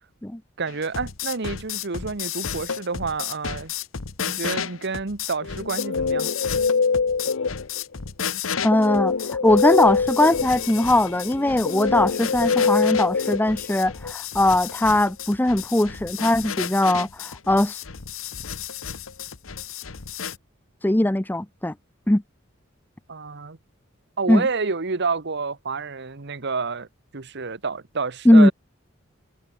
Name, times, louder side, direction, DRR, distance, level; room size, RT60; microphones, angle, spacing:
voice 1, 0.6-3.7 4.2-6.3 23.1-23.6 24.2-26.9 27.1-28.5, right 4 dB, 60° right, 1.2 m, -29 dB
sound 1, 0.7-20.4, left 7 dB, 85° left, 1.3 m, -33 dB
Guitar, 5.4-7.9 8.7-14.1, left 5 dB, 65° left, 0.7 m, -24 dB
voice 2, 8.6-9.1 9.4-17.8 20.8-21.7 22.1-22.2 24.3-24.5 28.2-28.5, left 1 dB, 10° left, 0.6 m, -20 dB
head